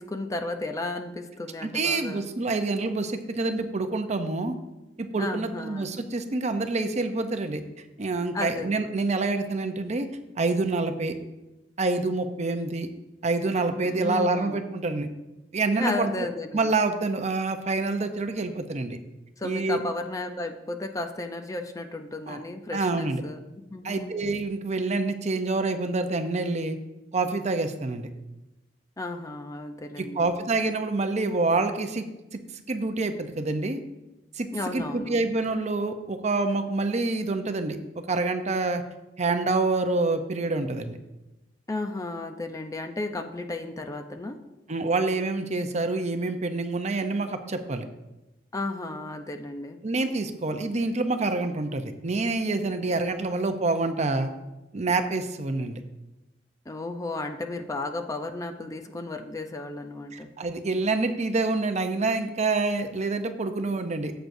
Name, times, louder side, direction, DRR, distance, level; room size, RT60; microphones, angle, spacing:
voice 1, 0.0-2.3 5.2-5.9 8.3-8.7 13.8-14.6 15.8-16.7 19.4-24.1 29.0-30.3 34.5-35.2 41.7-44.4 48.5-49.8 56.7-60.3, left 2 dB, 20° left, 5 dB, 0.6 m, -34 dB
voice 2, 1.6-4.5 5.0-7.6 8.0-10.1 10.4-11.1 11.8-12.9 13.2-15.1 15.5-16.1 16.5-19.0 19.4-19.8 22.3-22.4 22.7-23.2 23.8-26.8 27.1-28.1 30.0-32.0 32.3-33.8 34.3-37.8 38.1-38.8 39.2-41.0 44.7-47.8 49.8-54.3 54.7-55.8 60.1-64.1, right 3 dB, 40° right, 7 dB, 0.6 m, -27 dB
13.5 x 7.9 x 2.6 m, 0.99 s
head